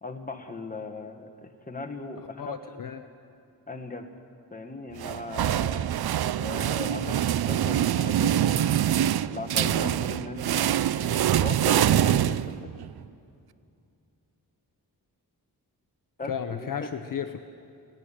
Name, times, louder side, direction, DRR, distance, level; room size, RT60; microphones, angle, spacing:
voice 1, 0.0-2.6 3.7-4.1 4.5-6.0 6.4-8.8 9.3-12.5 16.2-16.9, left 3 dB, 20° left, 4 dB, 1.5 m, -38 dB
voice 2, 2.4-3.1 16.3-17.4, left 8 dB, 55° left, 8 dB, 0.8 m, -33 dB
sound 1, 5.0-12.9, right 11 dB, 75° right, 0.5 m, -25 dB
18.0 x 15.0 x 9.9 m, 2.6 s
wide cardioid pair, 115°, 38 cm